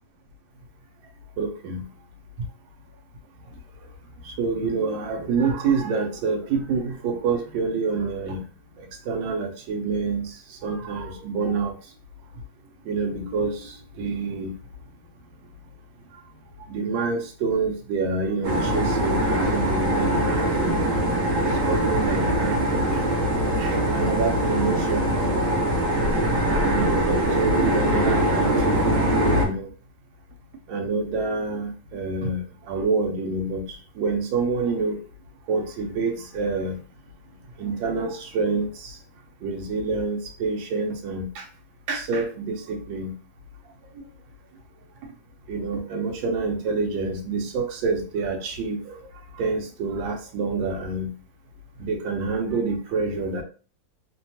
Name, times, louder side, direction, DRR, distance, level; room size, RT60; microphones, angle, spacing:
voice 1, 1.4-1.8 4.4-8.4 9.1-10.3 10.6-11.7 12.9-14.5 16.7-20.9 21.4-23.0 23.6-25.1 26.6-28.8 29.4-29.7 30.7-33.6 34.0-35.0 35.5-36.8 37.6-38.9 39.4-41.4 41.9-43.1 45.5-48.8 49.4-51.1 51.8-53.4, right 4 dB, 85° right, 3 dB, 1.4 m, -27 dB
sound 1, 18.4-29.4, right 1 dB, 65° right, 1.3 m, -22 dB
3.3 x 2.2 x 2.7 m, 0.37 s
omnidirectional pair, 2.1 m